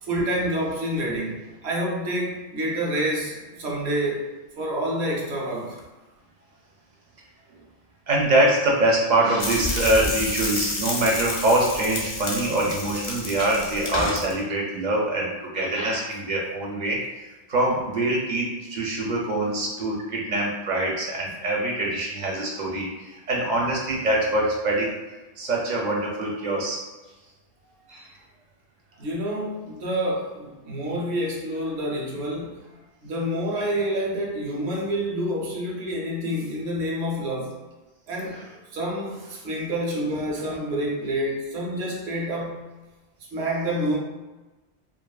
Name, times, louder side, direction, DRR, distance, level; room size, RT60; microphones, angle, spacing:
voice 1, 0.0-5.8 29.0-32.6 33.0-37.6 38.1-38.4 38.7-42.6 43.3-44.0, equal, 85° right, -2 dB, 0.9 m, -28 dB
voice 2, 8.1-25.0 25.4-26.8 27.9-28.1 38.3-38.5, right 1 dB, 55° right, -2 dB, 0.5 m, -24 dB
sound 1, 9.4-14.3, left 2 dB, 45° left, 0.4 m, -30 dB
2.6 x 2.3 x 2.3 m, 1.1 s
omnidirectional pair, 1.1 m